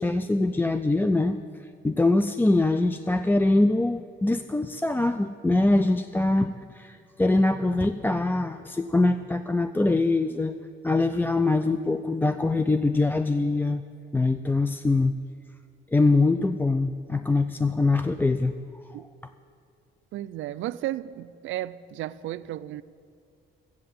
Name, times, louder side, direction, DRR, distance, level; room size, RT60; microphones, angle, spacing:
voice 1, 0.0-1.4 1.8-10.5 10.8-13.8 14.1-15.2 15.9-18.6, left 2 dB, 10° left, 0.4 m, -23 dB
voice 2, 20.1-22.8, right 14 dB, 80° right, 0.4 m, -33 dB
13.5 x 8.5 x 7.8 m
cardioid pair, 90°, 20 cm